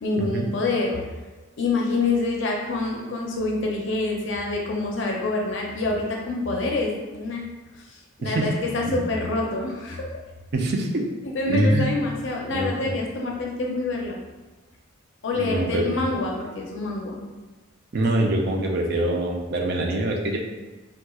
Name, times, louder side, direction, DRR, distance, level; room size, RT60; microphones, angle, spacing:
voice 1, 0.0-1.0 1.6-7.4 8.2-10.1 11.3-14.2 15.2-17.2, left 2 dB, 65° left, -1 dB, 0.5 m, -26 dB
voice 2, 8.2-8.5 8.9-9.0 10.5-11.0 11.5-11.9 12.5-12.9 15.3-15.8 17.9-20.4, right 1 dB, 55° right, 1 dB, 0.4 m, -24 dB
4.1 x 2.3 x 2.3 m, 1.2 s
head